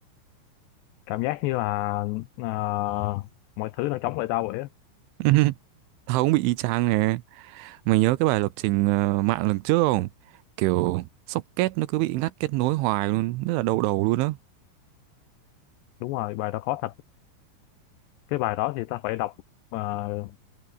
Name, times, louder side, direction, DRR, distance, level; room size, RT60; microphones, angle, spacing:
voice 1, 1.1-3.3 3.6-4.7 16.0-16.9 18.3-19.3 19.7-20.4, left 18 dB, 90° left, 2.4 m, -28 dB
voice 2, 5.2-5.5 6.1-10.1 10.6-14.4, right 19 dB, 80° right, 3.1 m, -24 dB
omnidirectional pair, 5.8 m